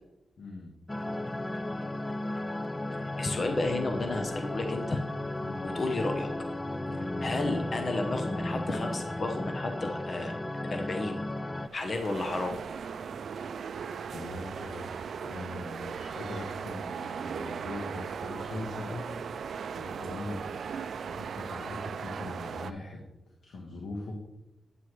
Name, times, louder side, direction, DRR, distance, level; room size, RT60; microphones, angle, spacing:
voice 1, 0.4-0.7 5.4-5.7 6.9-7.1 14.1-19.0 19.7-20.5 21.0-23.0 23.4-24.2, left 2 dB, 75° left, -1 dB, 1.4 m, -41 dB
sound 1, 0.9-11.7, left 1 dB, 20° left, 0.4 m, -35 dB
voice 2, 3.2-5.0 5.6-6.3 7.2-10.3 10.6-11.2 11.7-12.6, left 2 dB, 45° left, 5 dB, 1.0 m, -32 dB
sound 2, 11.6-22.7, right 6 dB, 75° right, 0.3 m, -38 dB
9.3 x 7.5 x 3.3 m, 0.92 s
cardioid pair, 80°, 0 cm